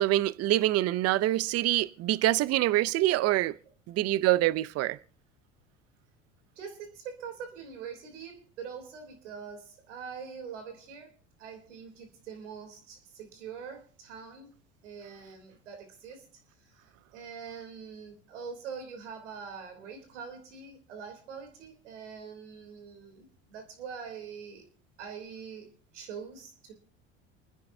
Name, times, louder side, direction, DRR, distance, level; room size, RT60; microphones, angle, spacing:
voice 1, 0.0-3.6 3.9-5.0, right 15 dB, 45° right, 0.6 m, -25 dB
voice 2, 6.5-11.1 11.4-14.5 14.8-16.3 16.6-16.7 17.1-24.6 25.0-25.7 25.9-26.7, right 6 dB, 90° right, 3.3 m, -43 dB
28.5 x 10.0 x 2.7 m
hypercardioid pair, 90°, 35 cm